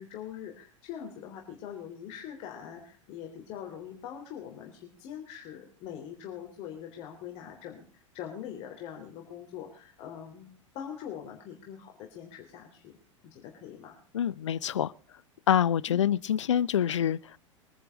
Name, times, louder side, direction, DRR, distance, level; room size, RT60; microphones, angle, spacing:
voice 1, 0.0-12.9 13.2-14.0, left 9 dB, 40° left, 3.4 m, -43 dB
voice 2, 14.1-14.9 15.5-17.4, left 9 dB, 65° left, 0.6 m, -26 dB
23.0 x 10.5 x 5.1 m
figure-of-eight pair, 90°, 17 cm